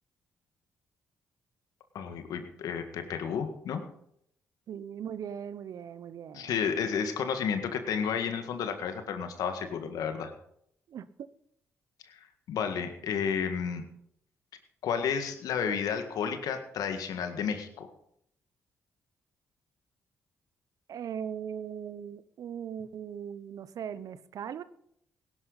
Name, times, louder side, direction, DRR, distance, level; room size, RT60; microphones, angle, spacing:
voice 1, 1.9-3.8 6.3-10.3 12.1-13.8 14.8-17.9, left 7 dB, 75° left, 7 dB, 1.8 m, -32 dB
voice 2, 4.7-6.5 10.9-11.3 20.9-24.6, right 8 dB, 65° right, 16 dB, 0.8 m, -39 dB
17.5 x 11.0 x 4.1 m, 0.71 s
hypercardioid pair, 45°, 6 cm